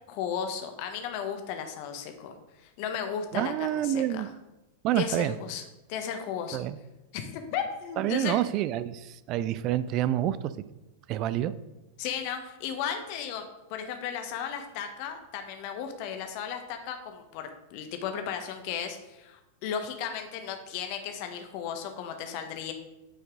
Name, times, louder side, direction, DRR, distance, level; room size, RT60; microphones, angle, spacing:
voice 1, 0.1-2.4 2.6-4.3 5.0-5.6 5.9-6.6 7.1-8.4 12.0-13.4 13.7-22.7, left 8 dB, 45° left, 6 dB, 0.9 m, -35 dB
voice 2, 3.3-4.3 4.8-5.4 6.5-6.8 8.0-10.5 11.1-11.5, right 12 dB, 40° right, 16 dB, 0.3 m, -28 dB
8.9 x 4.5 x 3.7 m, 0.98 s
figure-of-eight pair, 90°, 0 cm